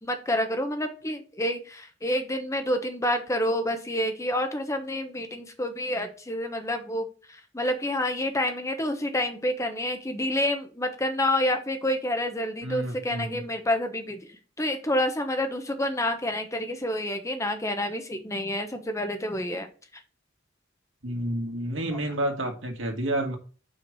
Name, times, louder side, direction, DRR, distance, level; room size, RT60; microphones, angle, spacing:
voice 1, 0.0-14.2 14.6-19.7, left 1 dB, 15° left, 6 dB, 1.1 m, -28 dB
voice 2, 12.6-13.4 21.0-23.4, right 1 dB, 75° right, 3 dB, 2.3 m, -30 dB
5.7 x 5.0 x 6.3 m, 0.36 s
head